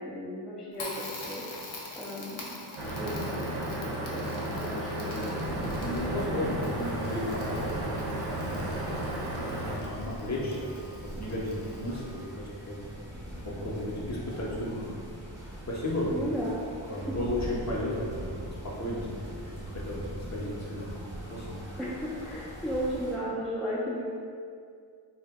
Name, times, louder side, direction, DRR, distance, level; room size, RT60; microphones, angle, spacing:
voice 1, 0.0-1.5 1.9-2.5 2.8-5.4 16.1-16.6 16.9-17.2 21.8-24.1, equal, ahead, -6 dB, 0.4 m, -35 dB
Crackle, 0.7-12.3, left 2 dB, 70° left, 0.7 m, -45 dB
sound 1, 2.8-9.8, right 1 dB, 85° right, 0.7 m, -33 dB
sound 2, 5.4-23.2, right 1 dB, 25° right, 0.8 m, -42 dB
voice 2, 5.8-9.0 9.6-10.7 11.2-12.9 13.4-14.8 15.4-16.3 16.9-18.3 18.8-21.0 21.3-21.6, left 1 dB, 35° left, -5 dB, 0.7 m, -34 dB
2.1 x 2.0 x 3.5 m, 2.2 s
cardioid pair, 45°, 48 cm